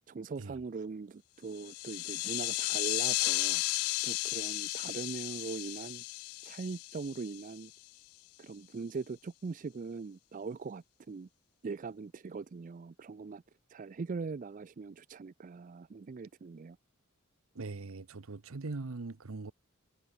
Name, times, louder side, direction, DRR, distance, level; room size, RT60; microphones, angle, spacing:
voice 1, 0.1-3.6 4.0-6.0 6.4-7.7 8.4-11.3 11.6-13.4 13.7-16.8, right 4 dB, 40° right, 0.4 m, -41 dB
sound 1, 1.6-7.6, left 20 dB, 85° left, 0.3 m, -34 dB
voice 2, 17.5-19.5, right 3 dB, 75° right, 0.8 m, -41 dB
head